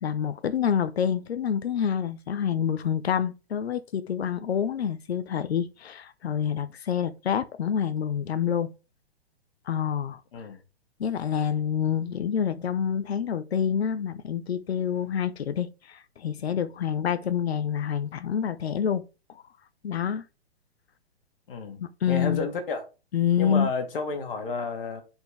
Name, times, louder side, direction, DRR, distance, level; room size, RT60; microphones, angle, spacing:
voice 1, 0.0-8.7 9.7-10.2 11.0-19.0 19.3-19.4 19.8-20.2 21.8-22.5 23.1-23.7, left 8 dB, 75° left, 0.7 m, -27 dB
voice 2, 21.5-21.8 22.1-22.8 23.4-25.0, left 4 dB, 55° left, 2.0 m, -31 dB
7.9 x 4.5 x 3.3 m
figure-of-eight pair, 120°, 32 cm